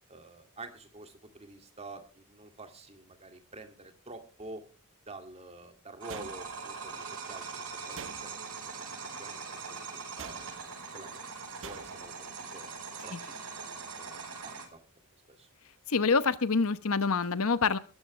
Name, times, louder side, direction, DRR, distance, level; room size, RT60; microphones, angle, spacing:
voice 1, 0.1-4.6 5.1-8.3 8.7-8.9 9.2-10.5 10.9-11.1 11.6-12.1 12.5-12.7 13.0-14.8 15.4-15.5, right 2 dB, 30° right, 6 dB, 2.4 m, -48 dB
sound 1, 6.0-14.7, right 5 dB, 90° right, 5.0 m, -42 dB
sound 2, 6.1-6.8 7.9-8.6 10.2-10.8 11.6-12.2, right 6 dB, 65° right, 1.0 m, -46 dB
voice 2, 15.9-17.8, left 4 dB, 65° left, 13 dB, 1.0 m, -26 dB
20.0 x 14.0 x 3.3 m, 0.36 s
head